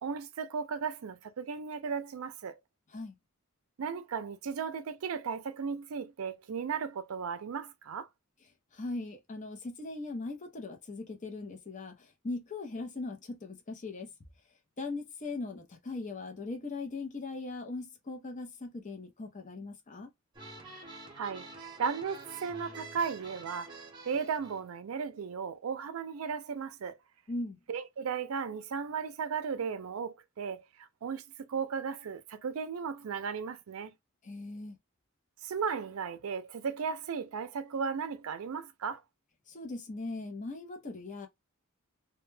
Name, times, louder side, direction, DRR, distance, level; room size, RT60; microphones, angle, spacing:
voice 1, 0.0-2.6 3.8-8.1 21.1-21.5 21.8-23.8 24.0-27.0 27.7-33.9 35.4-39.0, right 6 dB, 85° right, 0.4 m, -35 dB
voice 2, 8.7-14.1 14.8-20.1 27.3-27.6 34.2-34.8 39.5-41.3, left 3 dB, 35° left, 0.6 m, -39 dB
sound 1, 20.3-24.6, right 3 dB, 20° right, 0.8 m, -47 dB
2.2 x 2.1 x 3.1 m
head